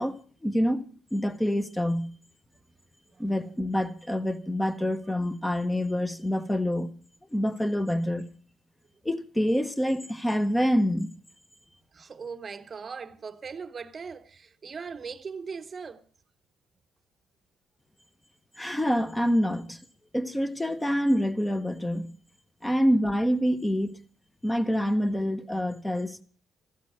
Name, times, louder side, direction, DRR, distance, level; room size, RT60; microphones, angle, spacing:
voice 1, 0.0-2.1 3.2-6.9 7.3-8.3 9.0-11.1 18.6-19.8 20.1-22.1 22.6-24.0 24.4-26.2, equal, 10° left, 0.9 m, -26 dB
voice 2, 11.9-16.0, right 5 dB, 30° right, 0.9 m, -39 dB
14.5 x 12.0 x 6.1 m
cardioid pair, 135°, 0 cm